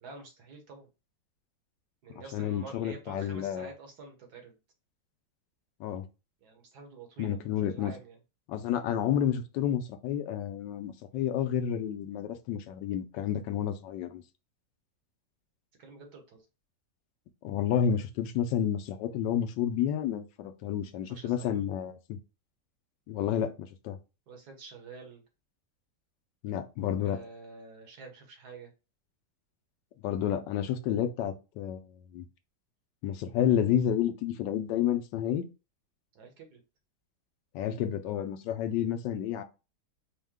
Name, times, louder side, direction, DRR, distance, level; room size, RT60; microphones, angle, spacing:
voice 1, 0.0-0.9 2.0-4.6 6.4-8.2 15.8-16.4 21.1-21.7 24.3-25.2 27.0-28.7 36.1-36.6, right 4 dB, 65° right, 1.5 m, -48 dB
voice 2, 2.3-3.7 5.8-6.1 7.2-8.0 8.5-14.2 17.4-22.2 23.1-24.0 26.4-27.2 30.0-32.2 33.0-35.5 37.5-39.4, left 9 dB, 85° left, 1.3 m, -30 dB
4.6 x 2.1 x 3.5 m
omnidirectional pair, 1.9 m